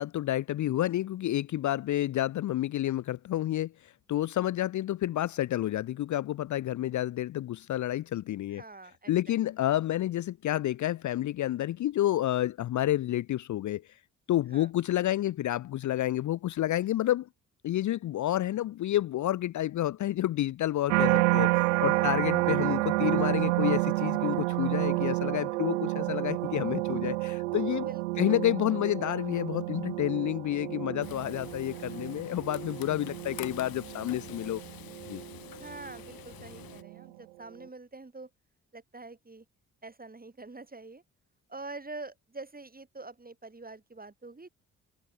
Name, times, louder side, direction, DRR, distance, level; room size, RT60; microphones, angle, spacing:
voice 1, 0.0-8.6 9.1-13.8 14.3-17.3 17.6-27.9 28.2-34.6 35.0-35.2, left 13 dB, 50° left, 0.7 m, -29 dB
voice 2, 8.5-9.3 14.5-14.7 21.7-22.5 27.8-28.4 35.5-38.3 38.7-39.5 39.8-41.0 41.5-44.5, right 3 dB, 25° right, 7.7 m, -46 dB
sound 1, 20.9-36.1 36.6-37.0, right 22 dB, 85° right, 1.0 m, -30 dB
Frying (food), 31.0-36.8, left 13 dB, 65° left, 4.6 m, -47 dB
hypercardioid pair, 45°, 38 cm